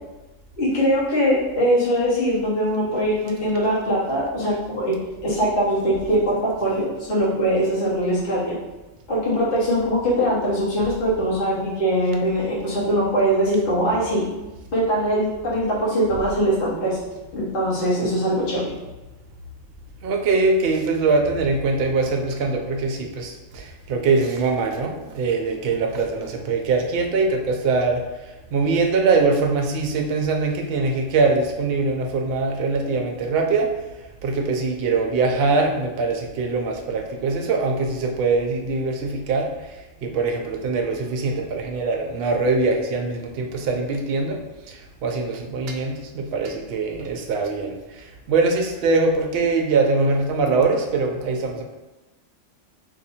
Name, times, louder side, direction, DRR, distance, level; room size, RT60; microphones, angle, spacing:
voice 1, 0.6-5.0 5.2-8.6 9.1-14.2 14.7-17.0 17.3-18.7, equal, 45° left, -6 dB, 1.1 m, -22 dB
voice 2, 20.0-28.0 28.5-33.7 34.2-39.5 40.0-44.4 44.7-47.7 48.3-51.6, right 3 dB, 60° right, 2 dB, 0.7 m, -22 dB
2.7 x 2.6 x 4.2 m, 1.1 s
omnidirectional pair, 1.3 m